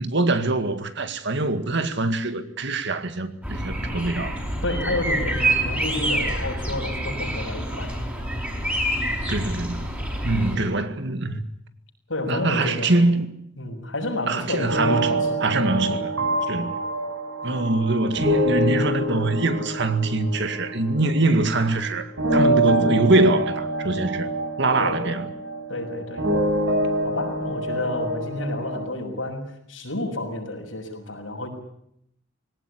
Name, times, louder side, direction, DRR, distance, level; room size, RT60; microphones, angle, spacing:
voice 1, 0.0-4.4 9.3-9.9 10.2-11.5 12.3-13.3 14.3-16.1 16.5-16.8 17.4-24.3 24.6-25.2, right 2 dB, 65° right, 2.1 m, -23 dB
sound 1, 3.4-10.6, right 1 dB, 10° right, 5.0 m, -27 dB
voice 2, 4.6-7.9 10.3-10.8 12.1-12.9 13.6-15.4 24.8-25.1 25.7-26.3 27.0-31.5, left 2 dB, 85° left, 6.8 m, -30 dB
sound 2, 14.7-21.9 22.2-28.9, right 1 dB, 85° right, 7.6 m, -26 dB
21.0 x 18.0 x 9.9 m
head